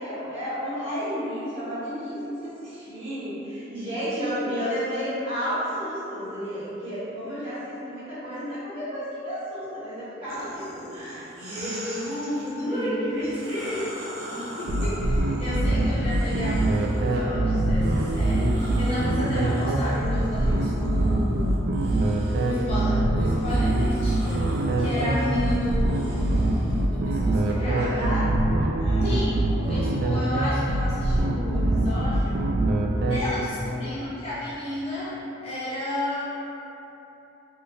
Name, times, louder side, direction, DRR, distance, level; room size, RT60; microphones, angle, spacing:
voice 1, 0.0-13.8 27.6-28.3 28.8-29.1, equal, 30° right, -14 dB, 1.4 m, -31 dB
sound 1, 10.3-12.5 13.1-17.2 17.7-26.8, right 1 dB, 75° right, 0.7 m, -41 dB
voice 2, 12.6-13.1 14.3-21.8 22.4-26.3 26.8-28.1 29.0-32.4 33.0-35.2 35.4-36.2, left 1 dB, 30° left, -11 dB, 0.6 m, -32 dB
sound 2, 14.7-33.2, right 1 dB, 55° right, 0.3 m, -23 dB
2.9 x 2.5 x 3.1 m, 3.0 s
head